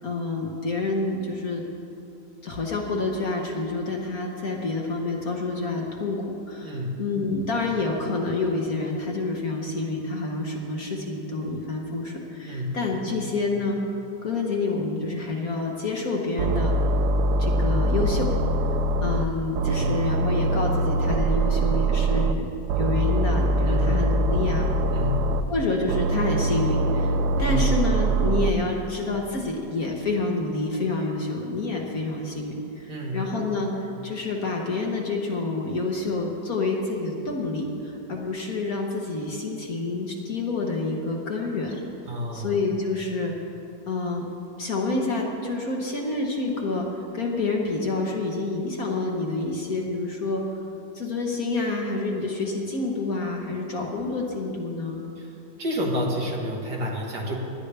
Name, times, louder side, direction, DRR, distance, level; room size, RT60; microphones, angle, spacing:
voice 1, 0.0-1.6 2.4-13.8 14.2-16.8 17.4-18.3 19.0-22.5 22.8-24.7 25.5-41.8 42.3-43.3 43.9-44.3 44.6-46.9 47.1-50.4 50.9-55.0, left 3 dB, 50° left, 0 dB, 1.4 m, -28 dB
voice 2, 6.6-7.0 12.4-12.8 19.7-20.0 23.6-24.0 24.9-25.3 27.4-27.7 32.9-33.2 42.1-42.5 55.2-55.3 55.6-57.4, left 1 dB, 55° right, -1 dB, 2.0 m, -29 dB
sound 1, 16.4-19.2 19.5-22.3 22.7-25.4 25.9-28.5, right 2 dB, 75° right, 0.9 m, -23 dB
19.5 x 11.0 x 3.4 m, 2.7 s
omnidirectional pair, 2.2 m